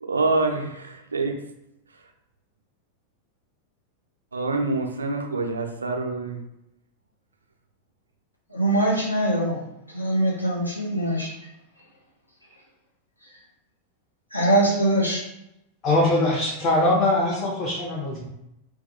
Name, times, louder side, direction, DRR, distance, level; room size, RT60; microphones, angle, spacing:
voice 1, 0.0-1.3 4.3-6.4, right 3 dB, 75° right, 3 dB, 0.3 m, -26 dB
voice 2, 8.5-9.6 9.9-11.3 14.3-15.2, right 1 dB, 85° left, -3 dB, 0.5 m, -22 dB
voice 3, 15.8-18.3, left 2 dB, 35° left, -4 dB, 0.6 m, -22 dB
2.2 x 2.2 x 2.8 m, 0.85 s
figure-of-eight pair, 90°, 0 cm